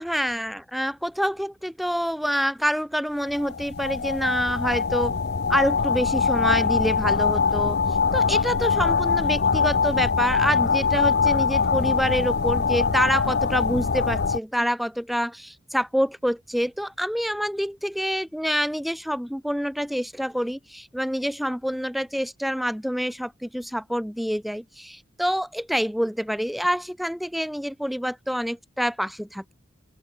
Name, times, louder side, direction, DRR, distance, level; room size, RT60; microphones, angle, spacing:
voice 1, 0.0-5.2 5.5-29.5, equal, ahead, 0.7 m, -27 dB
sound 1, 3.3-14.4, left 5 dB, 55° left, 0.7 m, -23 dB
open air
head